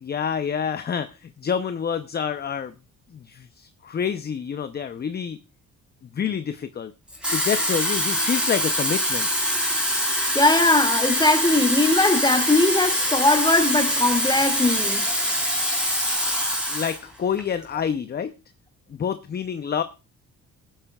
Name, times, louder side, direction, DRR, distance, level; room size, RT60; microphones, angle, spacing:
voice 1, 0.0-2.7 3.1-5.4 6.1-6.9 7.3-9.3 16.7-18.3 18.9-19.8, left 7 dB, 35° left, 0.6 m, -28 dB
Water tap faucet / Fill (with liquid), 7.1-17.0 17.4-17.6, equal, 5° right, 3.7 m, -24 dB
voice 2, 10.3-15.0, left 2 dB, 15° left, 2.1 m, -20 dB
22.5 x 8.9 x 2.3 m
cardioid pair, 90°, 30 cm